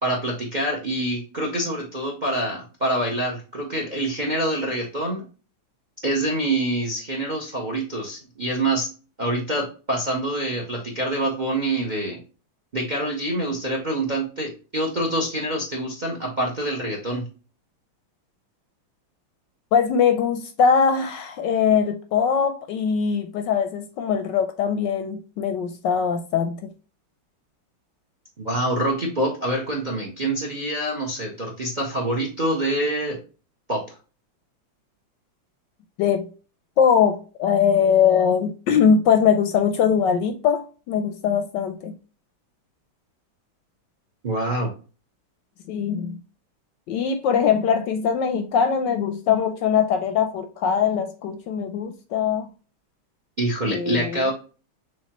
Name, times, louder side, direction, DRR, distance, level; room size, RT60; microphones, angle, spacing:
voice 1, 0.0-5.3 6.0-8.9 9.2-12.2 12.7-17.3 28.4-33.2 33.7-33.9 44.2-44.7 53.4-54.3, right 1 dB, 35° right, 0.7 m, -26 dB
voice 2, 19.7-26.7 36.0-36.3 36.8-41.9 45.7-46.2 46.9-52.5 53.6-54.3, left 7 dB, 75° left, 1.1 m, -21 dB
6.5 x 2.7 x 2.9 m
omnidirectional pair, 2.2 m